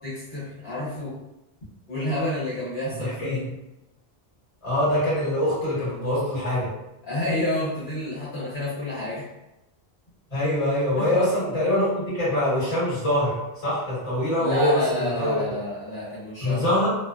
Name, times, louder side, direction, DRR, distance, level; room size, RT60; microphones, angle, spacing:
voice 1, 0.0-1.2 1.9-3.5 7.0-9.2 10.9-11.3 14.4-16.8, left 1 dB, 70° left, -10 dB, 1.1 m, -29 dB
voice 2, 3.0-3.5 4.6-6.7 10.3-15.4 16.4-16.9, left 1 dB, 35° left, -9 dB, 1.3 m, -24 dB
2.6 x 2.1 x 2.3 m, 0.95 s
omnidirectional pair, 1.1 m